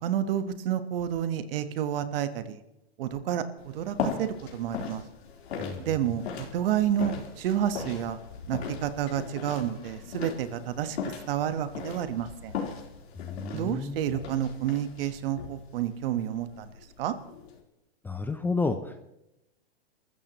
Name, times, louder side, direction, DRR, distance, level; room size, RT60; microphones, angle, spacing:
voice 1, 0.0-2.6 3.0-5.0 5.8-8.2 8.5-11.0 11.3-12.5 13.5-16.7 17.0-17.1, right 10 dB, 60° right, 11 dB, 1.4 m, -30 dB
sound 1, 3.6-17.6, left 6 dB, 85° left, 3.8 m, -39 dB
voice 2, 13.2-14.1 18.0-19.1, left 3 dB, 5° left, 8 dB, 0.5 m, -31 dB
28.5 x 14.5 x 3.0 m, 0.89 s
hypercardioid pair, 135°, 31 cm